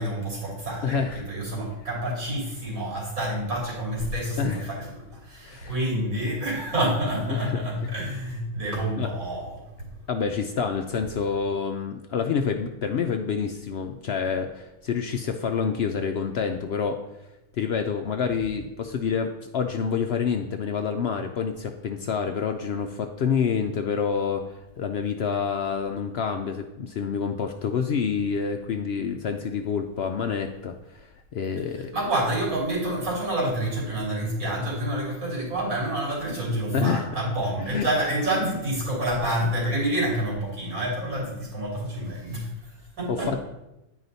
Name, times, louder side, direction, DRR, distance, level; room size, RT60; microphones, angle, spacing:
voice 1, 0.0-9.9 31.7-43.3, right 1 dB, 75° right, -3 dB, 3.4 m, -28 dB
voice 2, 0.8-1.3 4.4-4.7 5.5-5.7 7.3-7.6 8.9-9.1 10.1-17.0 17.5-31.9 36.7-37.1 37.6-37.9 43.1-43.4, left 6 dB, 65° left, 5 dB, 0.7 m, -28 dB
9.6 x 4.9 x 4.0 m, 0.93 s
omnidirectional pair, 1.4 m